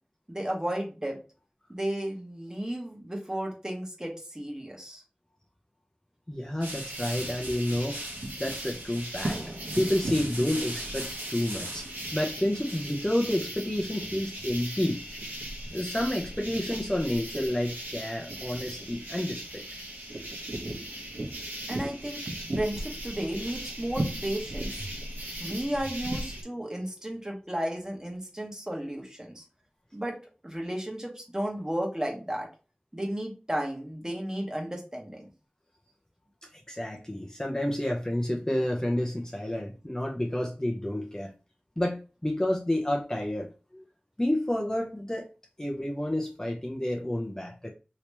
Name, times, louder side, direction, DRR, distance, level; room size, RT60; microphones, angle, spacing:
voice 1, 0.3-1.2 1.7-5.0 21.7-22.2 22.6-24.7 25.4-29.4 29.9-30.2 30.4-32.5 32.9-35.3, right 1 dB, 20° right, 0 dB, 1.2 m, -33 dB
voice 2, 6.3-8.0 8.4-9.4 9.8-11.9 12.1-15.0 15.7-19.6 36.7-41.3 41.8-43.8 44.2-45.3 45.6-47.7, left 1 dB, 20° left, 1 dB, 0.6 m, -30 dB
sound 1, 6.6-26.4, right 1 dB, 85° right, 1.0 m, -37 dB
3.0 x 2.9 x 3.3 m, 0.32 s
wide cardioid pair, 50°, 3 cm